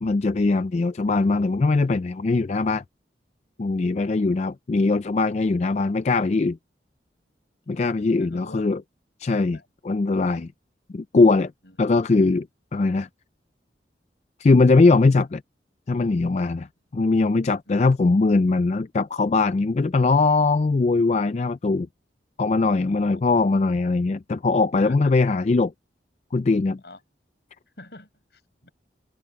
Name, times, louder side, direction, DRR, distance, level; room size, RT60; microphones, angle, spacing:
voice 1, 0.0-2.8 3.6-6.6 7.7-8.8 9.2-9.6 9.8-10.5 10.9-11.5 11.8-12.5 12.7-13.1 14.4-15.4 15.9-16.7 16.9-21.9 22.4-25.7 26.3-26.8, left 3 dB, 40° left, 0.4 m, -21 dB
voice 2, 3.9-4.4 7.7-7.9 8.2-8.8 9.5-9.6 11.6-12.0 17.7-17.8 22.8-23.2 24.8-25.1 26.8-27.0 27.8-28.7, left 2 dB, 70° left, 5.7 m, -46 dB
head